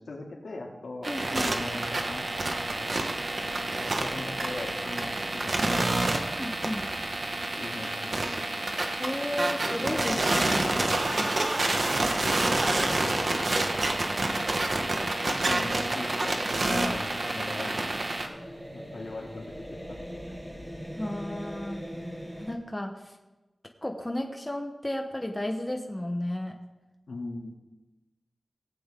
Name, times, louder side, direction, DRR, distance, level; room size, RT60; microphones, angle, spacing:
voice 1, 0.1-2.2 2.7-2.9 3.8-6.0 7.1-8.7 9.8-11.6 11.9-13.2 15.3-17.7 18.7-20.2 27.1-27.5, left 2 dB, 80° left, -1 dB, 2.4 m, -40 dB
sound 1, 1.0-18.3, right 2 dB, 50° right, 1.3 m, -28 dB
voice 2, 1.1-1.7 6.4-6.9 9.0-10.7 11.1-11.3 21.0-21.9 22.4-23.2 23.8-26.5, left 1 dB, 15° left, 3 dB, 1.0 m, -33 dB
sound 2, 1.1-7.4, right 1 dB, 65° right, 3.2 m, -47 dB
sound 3, 16.7-22.6, equal, 10° right, 1.7 m, -41 dB
17.5 x 8.7 x 3.7 m, 1.1 s
wide cardioid pair, 100°, 0 cm